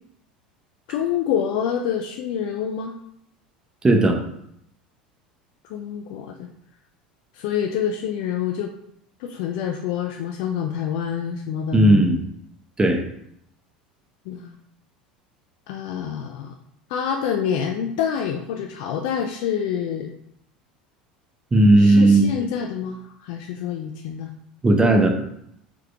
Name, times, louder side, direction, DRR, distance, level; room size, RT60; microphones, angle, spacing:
voice 1, 0.9-3.0 5.7-6.5 7.3-8.7 9.2-12.0 14.3-14.6 15.7-16.5 16.9-20.1 21.8-24.3, left 8 dB, 55° left, 3 dB, 0.5 m, -27 dB
voice 2, 3.8-4.2 11.7-12.2 12.8-13.0 21.5-22.3 24.6-25.2, right 2 dB, 15° right, 4 dB, 1.1 m, -15 dB
4.8 x 4.7 x 4.6 m, 0.74 s
figure-of-eight pair, 75°, 5 cm